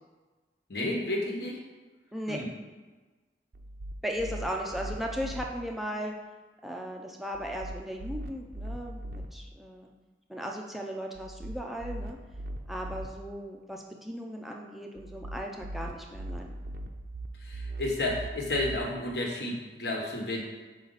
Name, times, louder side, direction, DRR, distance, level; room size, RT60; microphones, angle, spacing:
voice 1, 0.7-1.6 2.3-2.5 17.4-20.4, left 1 dB, 70° left, 0 dB, 1.3 m, -31 dB
voice 2, 2.1-2.4 4.0-6.1 6.6-9.9 10.3-12.2 12.7-16.5, equal, ahead, 0 dB, 0.4 m, -36 dB
sound 1, 3.5-5.5 7.3-9.3 11.2-13.1 15.0-18.8, right 1 dB, 60° right, 0.5 m, -40 dB
6.7 x 5.0 x 4.0 m, 1.3 s
head